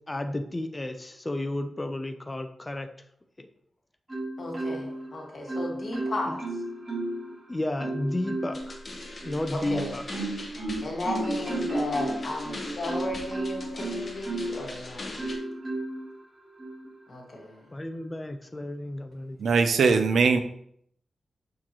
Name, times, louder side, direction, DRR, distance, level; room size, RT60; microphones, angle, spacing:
voice 1, 0.1-2.9 3.4-3.5 6.3-6.4 7.5-8.8 9.2-10.0 17.7-19.4, left 1 dB, 15° left, 7 dB, 0.5 m, -32 dB
Marimba xylophone, 4.1-5.1 5.5-7.3 7.8-8.7 9.2-14.7 15.2-16.0 16.6-16.8, right 2 dB, 30° right, 2.6 m, -33 dB
voice 2, 4.4-6.4 9.7-9.9 10.8-15.1 17.1-17.6, left 1 dB, 50° left, -1 dB, 1.8 m, -34 dB
sound 1, 8.5-15.4, left 2 dB, 35° left, 1.1 m, -41 dB
voice 3, 19.4-20.4, right 5 dB, 80° right, 8 dB, 0.6 m, -21 dB
6.3 x 6.2 x 3.0 m, 0.68 s
wide cardioid pair, 155°, 0 cm